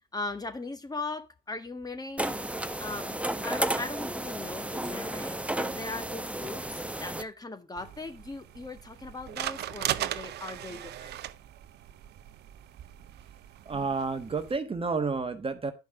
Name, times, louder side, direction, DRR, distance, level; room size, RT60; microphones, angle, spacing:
voice 1, 0.1-2.4 2.8-11.2, left 3 dB, 20° left, 1.7 m, -39 dB
sound 1, 2.2-7.2, right 1 dB, 5° right, 0.9 m, -33 dB
sound 2, 7.8-14.6, right 12 dB, 55° right, 0.6 m, -38 dB
voice 2, 13.6-15.7, right 4 dB, 30° right, 1.3 m, -30 dB
10.5 x 5.4 x 5.0 m
hypercardioid pair, 55°, 20 cm